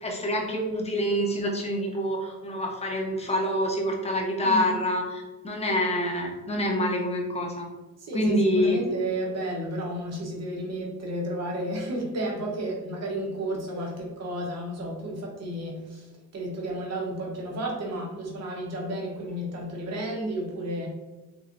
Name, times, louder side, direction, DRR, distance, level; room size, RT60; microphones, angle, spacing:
voice 1, 0.0-7.7 8.1-8.8, equal, 15° left, 0 dB, 0.8 m, -26 dB
voice 2, 4.4-4.7 8.0-20.9, right 1 dB, 40° right, -1 dB, 1.1 m, -32 dB
3.6 x 3.2 x 2.6 m, 1.2 s
cardioid pair, 100°, 39 cm